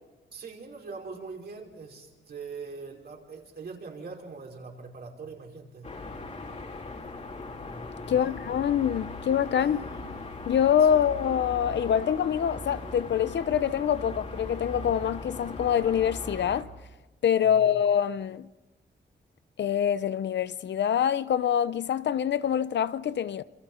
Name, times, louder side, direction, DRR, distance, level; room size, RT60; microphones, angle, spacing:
voice 1, 0.3-5.9 8.1-8.4 9.6-10.0 10.8-11.0 17.4-17.7, right 4 dB, 60° right, 5.4 m, -42 dB
sound 1, 5.8-16.6, left 2 dB, 40° left, 3.2 m, -39 dB
voice 2, 8.1-9.8 10.5-16.7 17.2-18.5 19.6-23.4, left 9 dB, 70° left, 0.7 m, -25 dB
28.0 x 27.5 x 5.7 m
wide cardioid pair, 130°, 19 cm